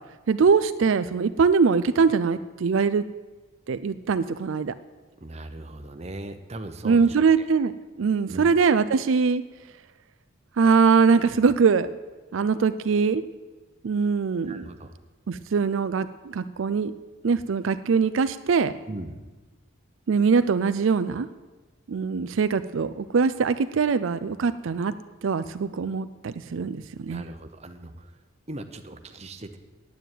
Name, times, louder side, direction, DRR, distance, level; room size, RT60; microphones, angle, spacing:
voice 1, 0.3-3.0 3.7-4.7 6.8-7.7 8.0-9.4 10.6-11.9 12.3-13.2 13.8-14.6 15.3-16.9 17.2-18.7 20.1-21.3 21.9-24.9 25.2-27.2, right 5 dB, 75° right, 12 dB, 0.4 m, -22 dB
voice 2, 5.2-7.5 8.3-8.4 14.5-14.9 18.9-19.2 27.0-28.1 28.5-29.6, right 1 dB, 35° right, 7 dB, 0.9 m, -39 dB
9.3 x 9.2 x 9.1 m, 1.2 s
head